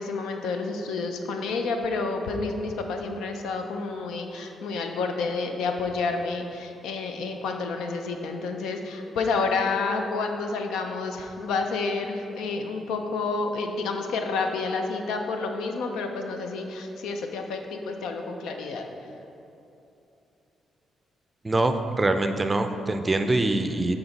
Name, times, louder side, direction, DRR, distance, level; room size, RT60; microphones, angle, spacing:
voice 1, 0.0-18.8, left 4 dB, 85° left, 4 dB, 0.5 m, -29 dB
voice 2, 21.4-23.9, right 2 dB, 25° right, 7 dB, 0.4 m, -24 dB
7.8 x 3.9 x 4.0 m, 2.8 s
cardioid pair, 80°, 0 cm